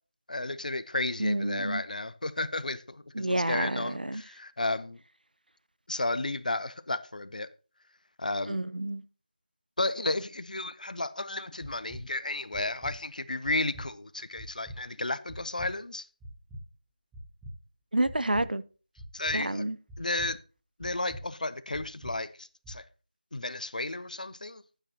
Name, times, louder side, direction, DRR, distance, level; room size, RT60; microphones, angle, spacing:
voice 1, 0.3-5.0 5.9-7.5 8.2-8.6 9.8-16.1 19.1-19.6 20.0-20.4 20.8-22.8 23.3-24.6, left 2 dB, 65° left, 0.7 m, -33 dB
voice 2, 1.2-1.8 3.2-4.2 8.5-9.0 17.9-18.6 19.3-19.8, right 1 dB, 90° right, 0.6 m, -29 dB
sound 1, 11.6-12.0 12.5-12.9 13.4-13.9 14.4-14.8 15.3-15.7 16.2-16.6 17.1-17.5 18.0-18.5 19.0-19.4 19.9-20.3 20.8-21.2 21.7-22.1 22.6-22.7, equal, 5° right, 0.8 m, -43 dB
12.0 x 8.9 x 2.9 m
figure-of-eight pair, 170°, 5 cm